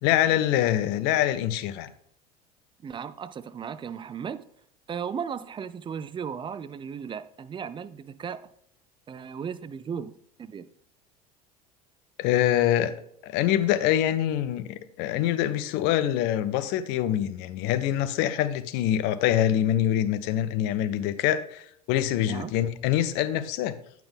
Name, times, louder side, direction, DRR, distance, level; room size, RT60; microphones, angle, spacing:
voice 1, 0.0-1.9 12.2-12.9 13.2-23.7, left 12 dB, 65° left, 0.7 m, -25 dB
voice 2, 2.8-4.5 4.9-8.5 9.1-10.1 10.4-10.7 22.2-22.5, right 7 dB, 25° right, 0.5 m, -36 dB
8.8 x 5.9 x 3.5 m
hypercardioid pair, 75°, 19 cm